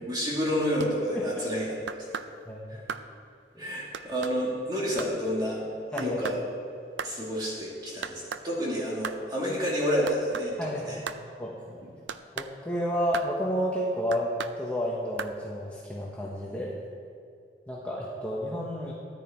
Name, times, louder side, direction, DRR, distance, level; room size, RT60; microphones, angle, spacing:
voice 1, 0.0-2.0 2.7-2.8 3.6-5.6 5.9-6.4 7.0-11.0, equal, 25° right, -4 dB, 2.5 m, -29 dB
sound 1, 0.8-0.9 1.9-2.3 2.9-3.1 3.9-4.4 5.0-5.1 6.0-6.4 7.0-7.2 8.0-8.5 9.0-9.2 10.1-10.5 11.1-11.2 12.1-12.5 13.1-13.3 14.1-14.6 15.2-15.3, right 6 dB, 90° right, 0.5 m, -36 dB
voice 2, 2.5-2.8 3.5-3.8 5.9-6.2 10.6-11.0 11.4-11.8 12.3-16.7 17.7-18.9, equal, 10° left, -5 dB, 1.1 m, -31 dB
14.0 x 9.3 x 4.5 m, 2.4 s
head